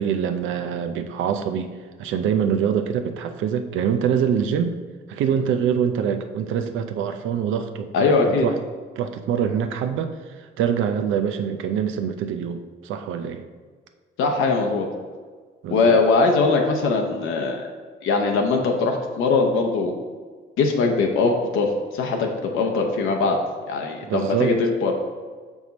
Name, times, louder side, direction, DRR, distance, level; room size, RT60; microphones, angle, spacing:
voice 1, 0.0-1.7 2.0-4.7 5.1-8.6 9.0-13.4 15.6-16.0 24.1-24.6, right 8 dB, 85° right, 7 dB, 0.5 m, -24 dB
voice 2, 7.9-8.5 14.2-14.9 15.7-17.6 18.0-19.9 20.6-23.4 23.7-24.9, left 3 dB, 80° left, 2 dB, 0.8 m, -21 dB
5.3 x 4.8 x 4.0 m, 1.5 s
cardioid pair, 90°, 20 cm